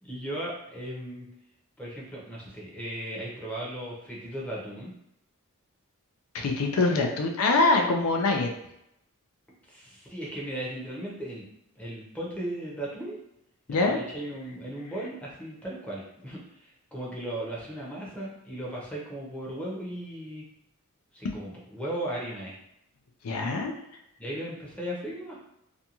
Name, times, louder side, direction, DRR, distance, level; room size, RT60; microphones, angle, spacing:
voice 1, 0.0-1.3 1.8-4.9 9.6-11.5 11.8-13.2 13.7-20.4 21.1-22.5 24.2-25.3, right 1 dB, 5° left, -5 dB, 0.7 m, -36 dB
voice 2, 6.3-8.5 13.7-14.0 23.2-23.7, left 3 dB, 75° left, 3 dB, 0.4 m, -24 dB
2.5 x 2.2 x 2.8 m, 0.78 s
head